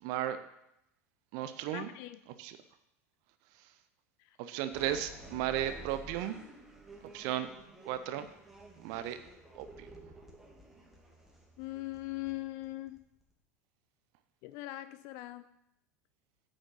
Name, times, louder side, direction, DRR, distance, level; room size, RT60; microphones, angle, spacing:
voice 1, 0.0-0.4 1.3-1.9 2.4-2.5 4.4-6.4 7.0-7.5 7.9-8.3 8.8-9.2 9.5-9.9, right 11 dB, 50° right, 11 dB, 0.7 m, -35 dB
voice 2, 1.7-2.2 4.2-4.4 11.6-13.0 14.4-15.5, left 17 dB, 45° left, 13 dB, 0.4 m, -41 dB
sound 1, 4.7-13.3, right 1 dB, 5° right, 2.0 m, -52 dB
8.9 x 6.3 x 6.3 m, 0.82 s
figure-of-eight pair, 80°, 8 cm